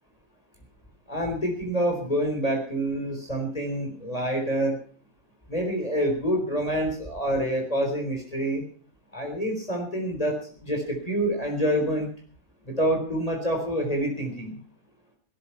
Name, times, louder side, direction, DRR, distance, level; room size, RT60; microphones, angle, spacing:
voice 1, 1.1-4.8 5.5-8.6 9.1-12.1 12.6-14.6, equal, 25° left, 2 dB, 4.1 m, -27 dB
17.5 x 13.5 x 5.8 m, 0.42 s
omnidirectional pair, 1.5 m